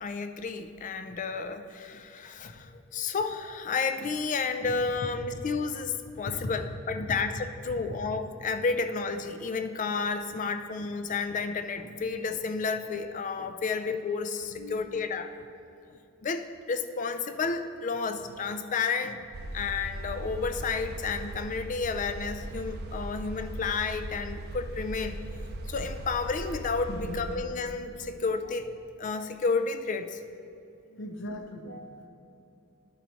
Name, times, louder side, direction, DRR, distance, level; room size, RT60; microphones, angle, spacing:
voice 1, 0.0-15.5 16.2-19.2 19.5-25.2 25.7-28.7 29.0-30.2, left 4 dB, 35° left, 9 dB, 0.4 m, -31 dB
voice 2, 14.6-15.0 26.9-27.3 28.0-28.1 30.9-32.1, left 1 dB, 60° left, 4 dB, 0.8 m, -39 dB
sound 1, 19.3-27.4, right 1 dB, 50° right, 0.5 m, -39 dB
11.5 x 4.1 x 4.4 m, 2.7 s
head